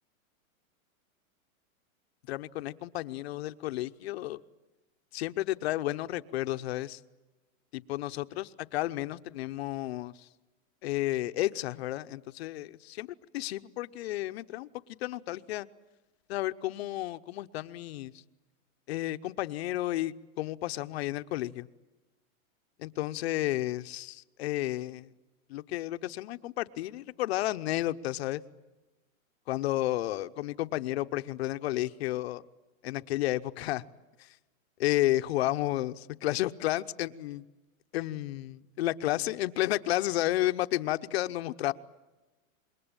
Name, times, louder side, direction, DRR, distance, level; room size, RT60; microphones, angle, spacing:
voice 1, 2.3-4.4 5.1-7.0 7.7-10.1 10.8-13.1 13.3-14.7 15.0-15.7 16.3-18.1 18.9-21.7 22.8-25.1 25.5-28.4 29.5-32.4 32.8-33.8 34.8-37.5 37.9-41.7, left 15 dB, 50° left, 11 dB, 0.9 m, -32 dB
26.5 x 22.0 x 8.9 m, 1.1 s
supercardioid pair, 160°, 41 cm